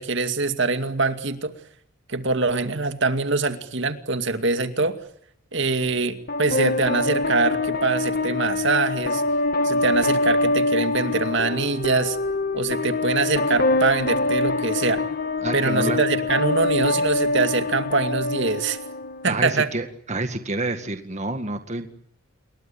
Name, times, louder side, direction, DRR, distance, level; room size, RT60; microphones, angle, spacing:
voice 1, 0.0-1.5 2.1-5.0 5.5-9.2 9.6-12.2 12.5-15.0 15.5-18.8 19.2-19.7, right 3 dB, 60° right, 8 dB, 2.3 m, -24 dB
sound 1, 6.3-19.3, left 2 dB, 45° left, 1.7 m, -24 dB
voice 2, 15.4-16.0 19.2-21.9, right 2 dB, 35° right, 7 dB, 1.9 m, -28 dB
28.5 x 22.5 x 8.7 m, 0.69 s
head